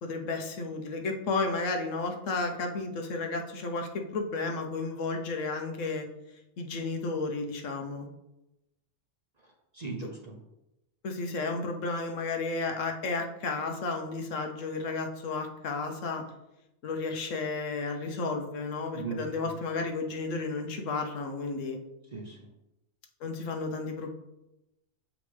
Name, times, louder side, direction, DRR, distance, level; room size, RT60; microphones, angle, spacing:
voice 1, 0.0-6.1 6.6-8.1 11.0-16.2 16.8-21.8 23.2-24.2, left 3 dB, 80° left, 4 dB, 1.2 m, -32 dB
voice 2, 9.7-10.4 18.9-19.2 22.1-22.5, right 5 dB, 45° right, 2 dB, 0.6 m, -38 dB
7.0 x 5.0 x 3.3 m, 0.92 s
omnidirectional pair, 1.3 m